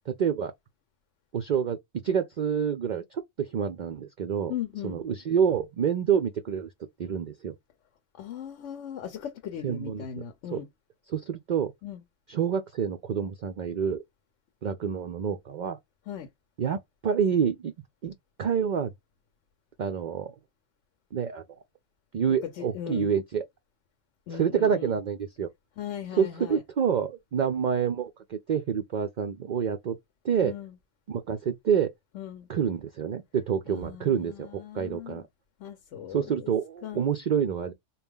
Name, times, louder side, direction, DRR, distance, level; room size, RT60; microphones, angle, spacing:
voice 1, 0.2-0.5 1.3-1.8 2.0-4.5 4.8-6.7 7.0-7.5 9.6-10.0 10.5-10.6 11.1-11.7 12.3-14.0 14.6-15.8 16.6-17.7 18.0-18.1 18.4-18.9 19.8-20.3 21.1-21.4 22.1-23.4 24.3-25.5 26.2-30.0 30.2-30.5 31.1-31.9 32.5-35.2 36.1-37.7, right 7 dB, 60° right, 0.5 m, -27 dB
voice 2, 4.5-5.0 8.1-10.7 11.8-12.0 16.1-16.3 22.6-23.1 24.3-24.9 25.8-26.6 30.4-30.8 32.1-32.5 33.7-35.2 35.6-36.5 36.8-37.1, left 9 dB, 75° left, 1.0 m, -38 dB
4.0 x 2.3 x 3.5 m
omnidirectional pair, 1.2 m